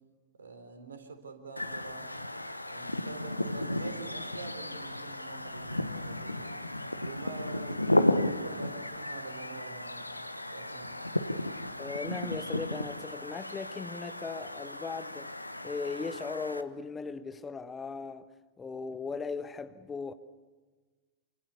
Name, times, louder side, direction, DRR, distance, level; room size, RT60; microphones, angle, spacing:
voice 1, 0.3-2.1 2.7-6.6 7.0-10.1 10.5-11.0, right 4 dB, 70° right, 3.6 m, -46 dB
sound 1, 1.6-16.6, left 1 dB, 85° left, 1.0 m, -34 dB
voice 2, 11.8-15.4 15.6-18.3 18.6-20.1, left 4 dB, 15° left, 1.2 m, -38 dB
28.0 x 25.0 x 6.9 m
figure-of-eight pair, 90°, 0 cm